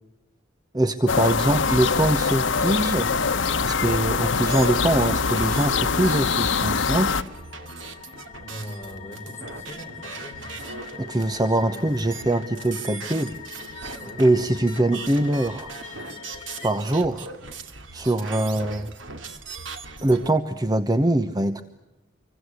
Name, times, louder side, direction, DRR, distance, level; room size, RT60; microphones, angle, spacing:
voice 1, 0.7-3.2 3.6-7.1 11.0-13.4 14.2-15.7 16.6-17.3 17.9-18.9 20.0-21.6, right 1 dB, 20° right, 10 dB, 1.0 m, -23 dB
sound 1, 1.1-7.2, left 5 dB, 80° left, 1.0 m, -23 dB
sound 2, 1.4-20.3, right 4 dB, 85° right, 2.6 m, -40 dB
sound 3, 3.7-16.8, left 7 dB, 40° left, 2.2 m, -44 dB
voice 2, 8.4-10.5 11.4-11.9 14.0-14.2, equal, 15° left, 1 dB, 6.2 m, -41 dB
26.5 x 24.5 x 8.2 m, 0.99 s
head